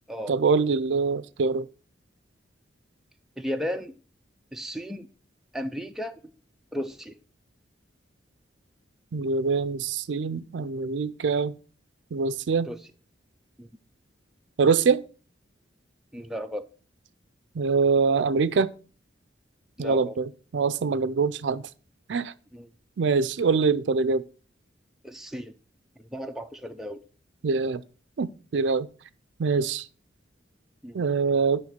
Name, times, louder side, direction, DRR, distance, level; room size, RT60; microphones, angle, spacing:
voice 1, 0.3-1.7 9.1-11.5 12.1-12.7 14.6-15.0 17.6-18.7 19.8-20.3 20.5-21.6 22.1-22.3 23.0-24.2 27.4-27.8 28.2-28.9 29.4-29.8 30.9-31.6, right 4 dB, 75° right, 0.4 m, -24 dB
voice 2, 3.4-3.9 4.5-5.1 5.5-6.3 6.7-7.2 12.6-12.9 13.6-13.7 16.1-16.7 19.8-20.2 22.5-22.7 25.0-25.5 26.0-27.0 30.8-31.1, equal, ahead, 0.5 m, -34 dB
9.2 x 3.1 x 6.6 m
head